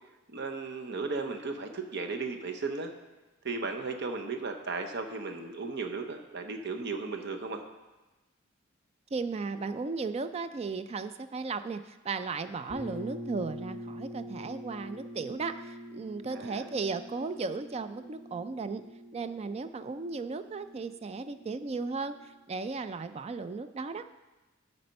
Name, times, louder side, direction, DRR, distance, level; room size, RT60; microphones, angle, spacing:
voice 1, 0.3-2.9 3.4-7.6 16.3-16.7, right 4 dB, 55° right, 5 dB, 0.9 m, -35 dB
voice 2, 9.1-18.8 19.1-22.2 22.5-24.0, right 4 dB, 30° right, 11 dB, 0.3 m, -35 dB
sound 1, 12.7-22.4, equal, 75° right, 3.0 m, -45 dB
12.0 x 4.3 x 5.3 m, 1.1 s
head